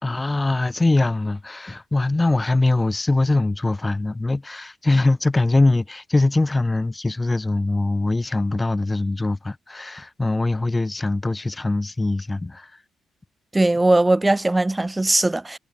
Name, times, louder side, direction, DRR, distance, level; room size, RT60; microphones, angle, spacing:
voice 1, 0.0-12.7, left 2 dB, 15° left, 2.4 m, -22 dB
voice 2, 13.5-15.6, right 2 dB, 15° right, 0.7 m, -19 dB
cardioid pair, 90°, 0 cm